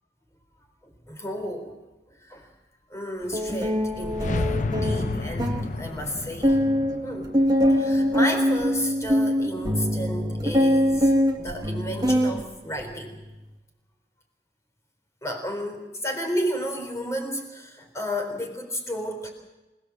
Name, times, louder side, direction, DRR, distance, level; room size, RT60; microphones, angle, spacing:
voice 1, 0.8-1.7 2.2-2.5 2.9-6.6 7.0-7.3 7.7-13.2 15.2-19.3, equal, 15° left, 3 dB, 4.1 m, -32 dB
sound 1, 3.3-5.7 6.1-6.2 6.4-12.4 12.8-13.2, equal, 25° right, 1.7 m, -23 dB
sound 2, 3.5-8.6, left 2 dB, 45° left, 0.7 m, -32 dB
27.0 x 18.0 x 7.5 m, 1.1 s
head